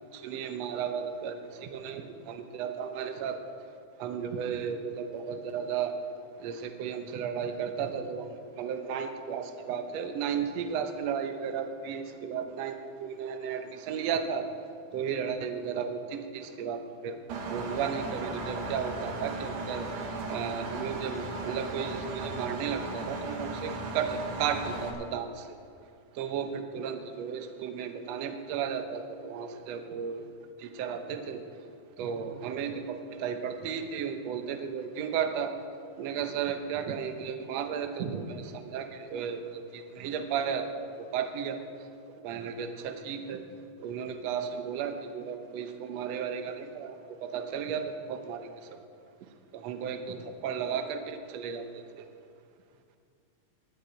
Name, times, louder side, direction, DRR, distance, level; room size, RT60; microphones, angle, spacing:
voice 1, 0.1-3.4 4.0-5.9 6.4-14.5 14.9-17.2 17.5-25.5 26.2-30.2 30.6-31.4 32.0-35.5 36.0-40.7 41.1-41.6 42.2-43.4 43.8-47.0 47.2-48.5 49.5-51.8, right 7 dB, 65° right, 7 dB, 1.9 m, -34 dB
Engine, 17.3-24.9, right 2 dB, 90° right, 2.9 m, -36 dB
13.5 x 8.3 x 9.3 m, 2.3 s
omnidirectional pair, 3.6 m